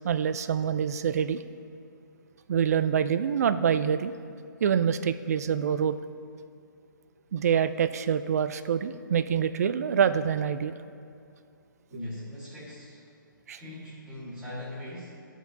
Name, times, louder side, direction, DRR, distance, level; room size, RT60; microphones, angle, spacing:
voice 1, 0.0-1.4 2.5-4.1 4.6-6.0 7.3-10.7 13.5-13.6, right 8 dB, 50° right, 12 dB, 0.4 m, -26 dB
voice 2, 11.9-13.0 13.6-15.2, left 1 dB, 10° right, -8 dB, 2.0 m, -40 dB
12.5 x 4.6 x 4.0 m, 2.5 s
hypercardioid pair, 155°, 11 cm